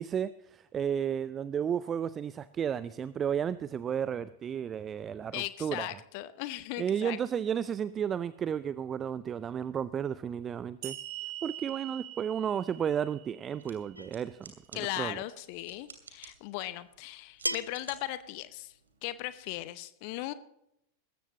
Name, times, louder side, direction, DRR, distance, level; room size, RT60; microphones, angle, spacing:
voice 1, 0.0-5.9 6.8-11.0 11.4-15.2, right 8 dB, 25° right, 17 dB, 0.5 m, -33 dB
voice 2, 5.3-7.2 14.7-18.7 19.0-20.3, left 16 dB, 45° left, 14 dB, 0.8 m, -38 dB
sound 1, 10.8-14.2, right 13 dB, 50° right, 2.2 m, -44 dB
sound 2, 13.5-19.6, right 4 dB, 70° right, 2.8 m, -55 dB
sound 3, 13.9-14.3 15.8-15.9 17.4-17.9, right 1 dB, 90° right, 0.4 m, -35 dB
19.5 x 14.5 x 2.9 m, 0.79 s
figure-of-eight pair, 90°, 0 cm